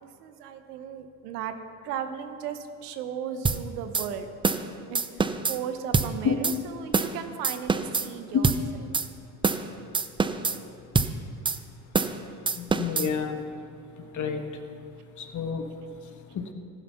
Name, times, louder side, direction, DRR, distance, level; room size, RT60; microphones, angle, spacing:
voice 1, 0.0-1.6 1.8-4.3 4.9-9.0, right 8 dB, 80° right, 8 dB, 1.0 m, -36 dB
sound 1, 3.5-3.6 3.9-4.1 4.4-4.7 5.0-5.6 5.9-6.1 6.4-6.6 6.9-7.2 7.4-8.1 8.4-8.6 8.9-9.1 9.4-9.7 9.9-10.6 11.0-11.1 11.5-11.6 11.9-12.2 12.5-13.1, right 4 dB, 10° right, 0.4 m, -25 dB
voice 2, 12.5-13.4 14.1-14.4 15.2-15.7 16.3-16.5, left 7 dB, 40° left, 6 dB, 1.4 m, -28 dB
15.5 x 6.9 x 5.7 m, 2.4 s
hypercardioid pair, 75°, 46 cm